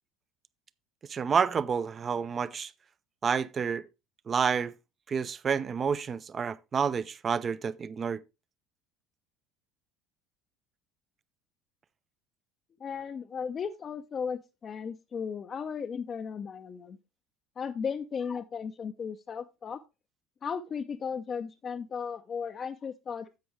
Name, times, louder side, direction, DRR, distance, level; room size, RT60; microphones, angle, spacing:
voice 1, 1.1-2.7 3.2-3.9 4.3-4.7 5.1-8.2, right 6 dB, 35° right, 0.5 m, -29 dB
voice 2, 12.8-17.0 17.6-19.8 20.4-23.3, left 6 dB, 35° left, 0.5 m, -36 dB
10.5 x 7.7 x 3.2 m
hypercardioid pair, 65°, 0 cm